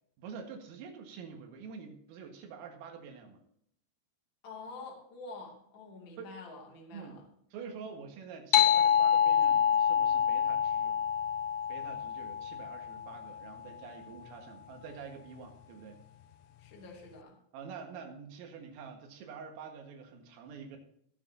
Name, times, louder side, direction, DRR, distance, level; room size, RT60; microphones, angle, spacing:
voice 1, 0.2-3.4 6.2-6.3 6.9-7.2 7.5-11.0 11.7-16.0 17.5-20.8, right 6 dB, 80° right, 3 dB, 4.3 m, -47 dB
voice 2, 4.4-7.2 16.6-17.4, left 3 dB, 35° left, 0 dB, 2.1 m, -47 dB
sound 1, 8.5-13.5, left 9 dB, 90° left, 3.3 m, -27 dB
21.0 x 7.4 x 2.8 m, 0.70 s
omnidirectional pair, 5.9 m